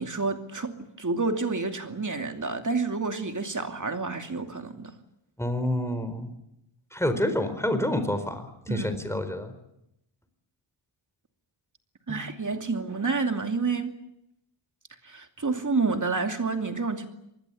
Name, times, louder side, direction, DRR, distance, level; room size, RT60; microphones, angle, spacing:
voice 1, 0.0-4.9 8.7-8.9 12.1-13.9 15.0-17.1, right 4 dB, 35° right, 5 dB, 2.6 m, -29 dB
voice 2, 5.4-6.3 6.9-9.5 12.1-12.2, left 1 dB, 5° left, 9 dB, 4.5 m, -28 dB
26.0 x 20.5 x 8.5 m, 0.83 s
wide cardioid pair, 100°, 50 cm